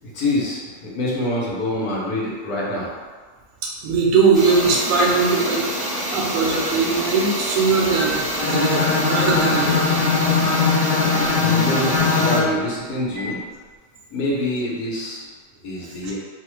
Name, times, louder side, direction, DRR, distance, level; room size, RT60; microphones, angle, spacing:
voice 1, 0.0-2.9 11.4-13.4 14.1-15.2 15.6-16.1, left 1 dB, 85° left, -5 dB, 1.2 m, -26 dB
voice 2, 3.6-9.8 13.2-13.3, right 4 dB, 70° right, -3 dB, 0.9 m, -20 dB
sound 1, 4.3-12.4, right 1 dB, ahead, 0.5 m, -27 dB
Bowed string instrument, 8.4-12.6, left 4 dB, 60° left, 0.6 m, -20 dB
2.9 x 2.1 x 3.0 m, 1.5 s
omnidirectional pair, 1.6 m